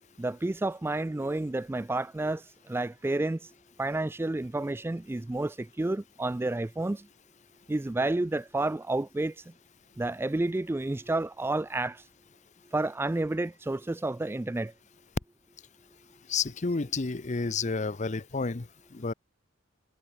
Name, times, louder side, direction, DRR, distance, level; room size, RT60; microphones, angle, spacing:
voice 1, 0.2-3.5 3.8-7.1 7.7-9.4 10.0-12.0 12.7-14.7, right 2 dB, 10° right, 0.3 m, -30 dB
voice 2, 16.3-19.1, left 4 dB, 35° left, 0.7 m, -31 dB
head